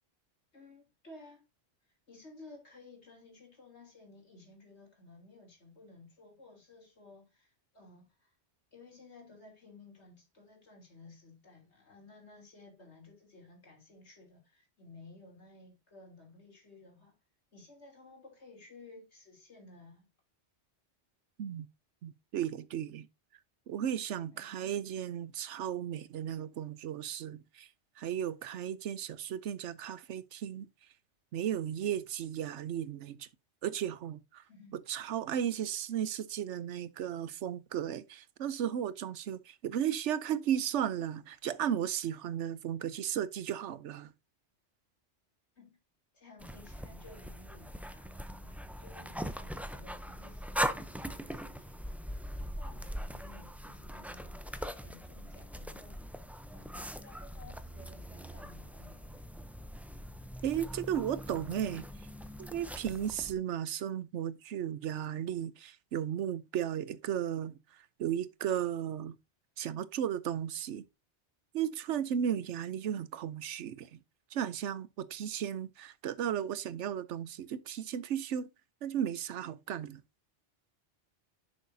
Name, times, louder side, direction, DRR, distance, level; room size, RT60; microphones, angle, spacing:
voice 1, 0.5-1.4 1.8-8.3 8.7-17.2 17.5-20.1 24.3-24.7 34.4-34.8 45.6-45.8 46.1-52.0 52.6-56.1 56.5-59.4 72.3-72.5, left 3 dB, 75° left, 3.3 m, -56 dB
voice 2, 22.0-23.1 23.7-27.7 28.0-30.7 31.3-33.3 33.6-34.4 34.9-44.1 60.4-62.1 62.4-69.2 69.6-70.8 71.5-74.0 74.3-78.5 78.8-80.0, right 9 dB, 85° right, 1.0 m, -35 dB
sound 1, 46.4-63.3, equal, ahead, 0.3 m, -41 dB
10.5 x 6.3 x 2.7 m
omnidirectional pair, 1.2 m